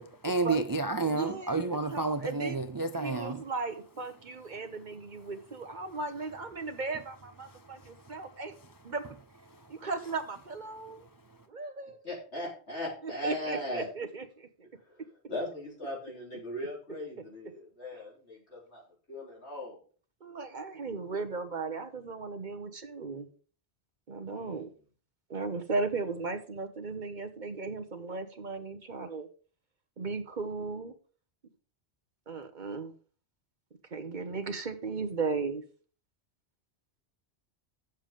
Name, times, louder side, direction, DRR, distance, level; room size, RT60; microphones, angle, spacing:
voice 1, 0.0-3.4 7.8-7.9, right 3 dB, 30° right, 0.4 m, -30 dB
voice 2, 1.0-2.6 2.9-8.5 8.8-9.0 9.7-11.1 11.5-12.0 13.0-14.5 17.9-18.0 20.2-23.3 24.1-24.7 25.3-29.3 30.0-30.9 32.3-32.9 33.9-35.6, right 4 dB, 45° right, 1.1 m, -36 dB
voice 3, 12.0-13.9 15.3-18.8 19.1-19.8 24.3-24.6, left 1 dB, 80° left, 4.5 m, -38 dB
9.0 x 7.2 x 5.1 m
omnidirectional pair, 1.1 m